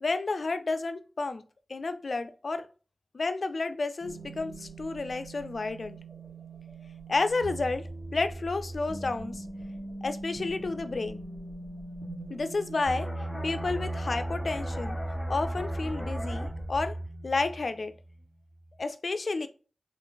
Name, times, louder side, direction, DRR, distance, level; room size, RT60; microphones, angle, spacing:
voice 1, 0.0-1.4 1.7-2.7 3.1-6.0 7.1-9.4 10.0-11.2 12.3-15.0 15.3-17.0 17.2-17.9 18.8-19.5, left 3 dB, 65° left, 0.4 m, -31 dB
sound 1, 4.0-16.9, right 2 dB, 35° right, 1.0 m, -42 dB
sound 2, 12.9-18.3 18.6-18.8, right 1 dB, 10° left, 0.9 m, -35 dB
3.3 x 2.4 x 3.8 m
wide cardioid pair, 60°, 0 cm